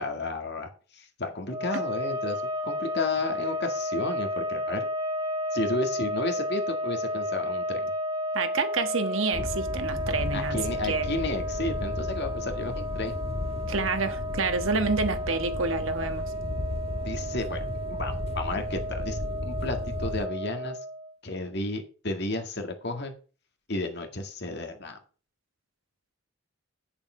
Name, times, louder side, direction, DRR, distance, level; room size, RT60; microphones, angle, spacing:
voice 1, 0.0-4.9 5.5-7.9 10.3-13.2 17.0-17.7 17.9-20.8 21.2-23.1 23.7-25.0, left 2 dB, 50° left, 2.0 m, -32 dB
sound 1, 1.5-21.1, equal, 20° right, 0.9 m, -33 dB
voice 2, 8.3-10.6 10.9-11.1 13.7-16.3, right 4 dB, 65° right, 1.4 m, -28 dB
sound 2, 9.3-20.3, left 2 dB, 30° left, 0.6 m, -34 dB
8.8 x 7.0 x 5.6 m
head